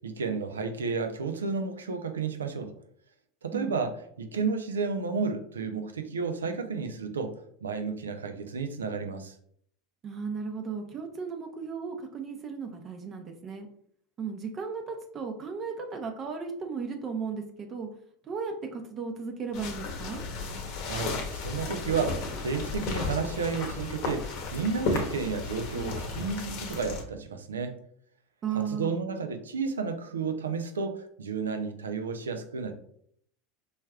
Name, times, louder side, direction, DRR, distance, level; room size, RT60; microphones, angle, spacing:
voice 1, 0.0-2.7 3.4-7.3 7.6-9.4 20.8-27.8 28.5-32.7, right 5 dB, 90° right, 7 dB, 0.5 m, -32 dB
voice 2, 10.0-13.7 14.2-17.9 18.2-20.2 28.4-29.0, right 5 dB, 35° right, 4 dB, 0.7 m, -35 dB
sound 1, 19.5-27.0, left 4 dB, 60° left, 0.9 m, -34 dB
4.8 x 3.1 x 2.3 m, 0.65 s
hypercardioid pair, 90°, 0 cm